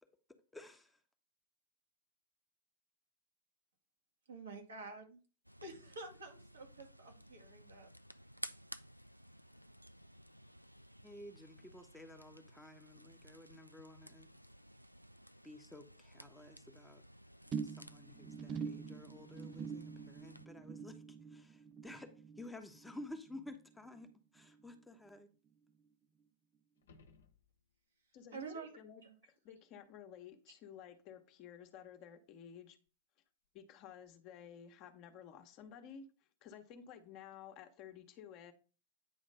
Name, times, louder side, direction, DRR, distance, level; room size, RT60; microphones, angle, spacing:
voice 1, 0.5-1.0 11.0-14.3 15.4-17.0 17.6-25.3, left 1 dB, 5° left, 5 dB, 1.1 m, -53 dB
voice 2, 4.3-5.2 5.6-7.9 28.3-28.7 29.0-29.1, right 4 dB, 70° right, 2 dB, 2.1 m, -49 dB
sound 1, 5.4-20.5, equal, 90° right, 0.3 m, -55 dB
sound 2, 17.5-24.1 24.4-24.8 25.1-25.2, right 6 dB, 30° right, 0.5 m, -46 dB
sound 3, 26.8-28.0 32.9-33.0, left 4 dB, 65° left, 1.0 m, -64 dB
voice 3, 28.1-32.8 33.5-36.1 36.4-38.5, left 8 dB, 40° left, 7 dB, 1.1 m, -53 dB
9.3 x 3.1 x 5.3 m, 0.35 s
figure-of-eight pair, 90°, 0 cm